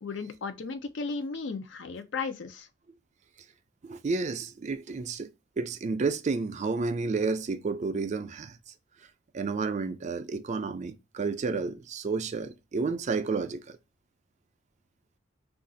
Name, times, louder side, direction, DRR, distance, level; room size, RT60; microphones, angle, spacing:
voice 1, 0.0-2.7, left 4 dB, 70° left, 0.5 m, -35 dB
voice 2, 3.8-5.3 5.6-8.6 9.3-13.6, right 4 dB, 40° right, 0.4 m, -31 dB
2.5 x 2.4 x 3.8 m
head